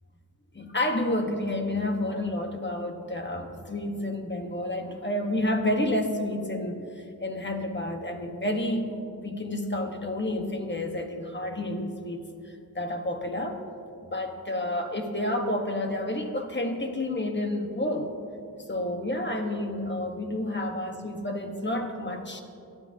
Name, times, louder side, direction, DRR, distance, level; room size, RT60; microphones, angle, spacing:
voice 1, 0.5-12.2 12.7-13.6 14.0-18.1 18.7-22.4, left 1 dB, 30° left, 4 dB, 1.3 m, -30 dB
22.0 x 13.0 x 2.8 m, 2.5 s
wide cardioid pair, 85°, 36 cm